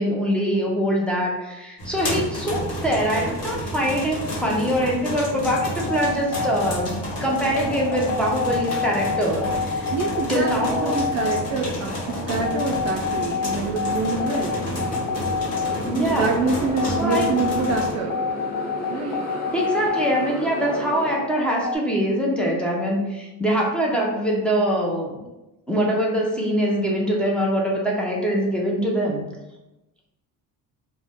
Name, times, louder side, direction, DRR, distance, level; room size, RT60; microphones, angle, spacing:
voice 1, 0.0-9.9 10.3-11.0 15.9-16.4 16.8-17.3 19.5-25.2 25.7-29.2, equal, 5° left, -3 dB, 0.6 m, -23 dB
sound 1, 1.8-17.9, equal, 40° left, 1.1 m, -31 dB
sound 2, 5.5-21.8, left 5 dB, 70° left, 0.5 m, -28 dB
voice 2, 9.9-14.6 16.1-18.2 18.9-19.1, right 3 dB, 45° right, 0 dB, 0.4 m, -26 dB
Motorcycle, 11.5-21.2, equal, 20° left, 1.1 m, -34 dB
2.4 x 2.2 x 3.5 m, 0.98 s
cardioid pair, 95°, 39 cm